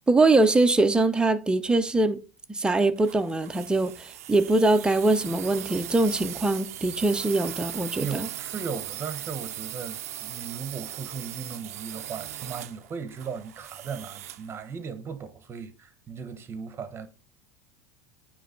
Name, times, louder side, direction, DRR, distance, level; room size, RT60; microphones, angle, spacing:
voice 1, 0.1-2.2 2.5-8.3, right 2 dB, 10° right, 0.7 m, -22 dB
sound 1, 3.0-14.5, right 13 dB, 85° right, 0.4 m, -39 dB
voice 2, 8.0-17.1, right 6 dB, 30° right, 1.1 m, -37 dB
9.2 x 3.1 x 3.9 m
hypercardioid pair, 95°, 8 cm